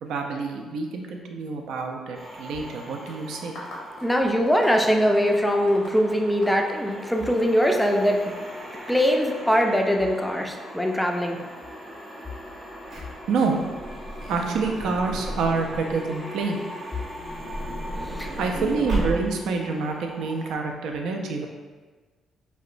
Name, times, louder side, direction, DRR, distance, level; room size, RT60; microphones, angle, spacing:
voice 1, 0.0-3.6 13.3-13.6 14.3-16.6 18.4-21.5, right 4 dB, 80° right, 2 dB, 0.3 m, -27 dB
sound 1, 2.1-20.6, equal, 15° right, 0.7 m, -41 dB
sound 2, 3.1-7.5, left 1 dB, 90° left, 0.6 m, -43 dB
voice 2, 4.0-8.2 8.9-11.4 18.0-18.8, equal, 5° left, 2 dB, 0.3 m, -22 dB
Truck / Door, 12.5-16.0 17.0-19.6 20.3-20.4 20.5-20.7, right 1 dB, 65° right, 0.7 m, -33 dB
2.8 x 2.1 x 2.4 m, 1.4 s
cardioid pair, 90°, 0 cm